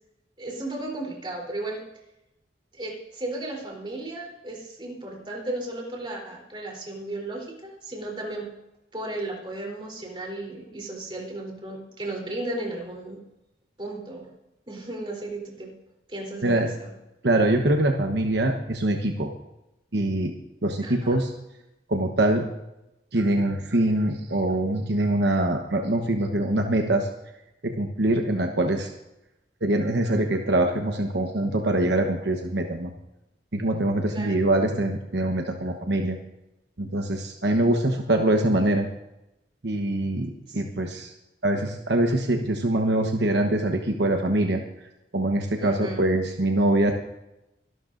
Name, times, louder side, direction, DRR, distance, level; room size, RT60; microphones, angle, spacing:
voice 1, 0.4-1.8 2.7-8.5 8.9-13.2 13.8-14.3 14.7-15.7 16.1-16.9 20.8-21.2 34.1-34.5 40.5-40.6 45.6-46.0, right 2 dB, 30° right, -1 dB, 3.7 m, -35 dB
voice 2, 17.2-19.3 19.9-20.3 20.6-21.3 21.9-22.5 23.1-27.1 27.6-28.9 29.6-32.9 33.5-36.2 36.8-38.9 39.6-41.1 41.4-44.6 45.1-46.9, right 1 dB, 75° right, 4 dB, 1.1 m, -24 dB
24.0 x 12.0 x 2.6 m, 0.91 s
head